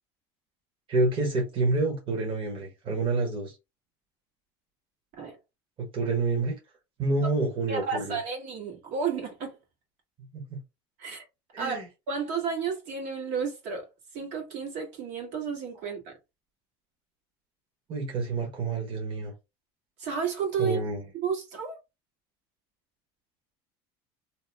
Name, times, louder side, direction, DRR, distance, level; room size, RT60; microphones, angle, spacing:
voice 1, 0.9-3.6 5.8-6.6 7.0-8.2 10.3-10.6 11.5-11.9 17.9-19.3 20.6-21.0, right 3 dB, 40° right, 1.2 m, -28 dB
voice 2, 7.7-9.6 11.0-11.2 11.6-13.9 14.1-16.1 20.0-20.8 21.2-21.8, right 5 dB, 70° right, 1.5 m, -32 dB
2.9 x 2.0 x 3.3 m
supercardioid pair, 115°, 13 cm